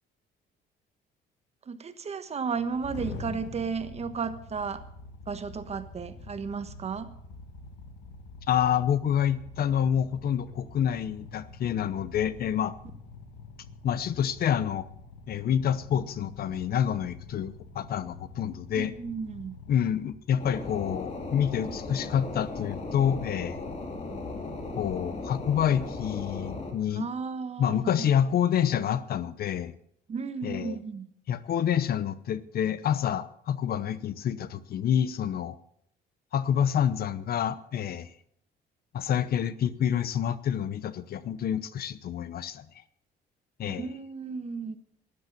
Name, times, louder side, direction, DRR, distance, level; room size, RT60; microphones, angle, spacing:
voice 1, 1.7-4.8 5.3-7.1 18.7-19.6 26.9-28.1 30.1-31.1 43.7-44.8, right 5 dB, 35° right, 11 dB, 1.3 m, -34 dB
sound 1, 2.5-20.1, left 3 dB, 75° left, 2.0 m, -46 dB
voice 2, 8.5-12.7 13.8-14.9 15.3-18.9 19.7-23.6 24.8-27.1 27.6-29.7 30.4-30.8 31.3-35.6 36.3-38.1 38.9-42.7 43.6-43.9, left 9 dB, 55° left, 16 dB, 0.8 m, -28 dB
sound 2, 20.4-26.7, left 3 dB, 35° left, 2.8 m, -37 dB
12.0 x 11.0 x 7.1 m, 0.68 s
cardioid pair, 115°, 19 cm